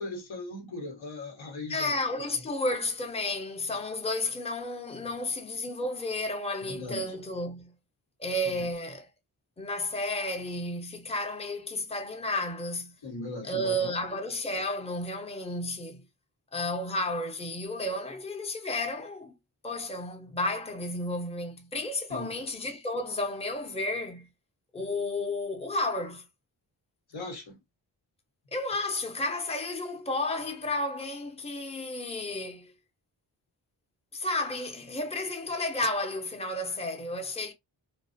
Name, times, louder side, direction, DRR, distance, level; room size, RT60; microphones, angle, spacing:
voice 1, 0.0-2.0 2.4-2.5 6.6-7.1 8.4-8.5 13.0-13.9 22.1-22.3 27.1-27.6, left 2 dB, 80° left, 1.2 m, -39 dB
voice 2, 1.7-7.7 8.2-9.1 9.6-13.0 13.4-16.0 16.5-19.3 19.6-24.3 24.7-26.2 28.5-32.7 34.1-37.5, left 1 dB, 15° left, 0.7 m, -32 dB
2.3 x 2.1 x 2.6 m
cardioid pair, 40°, 47 cm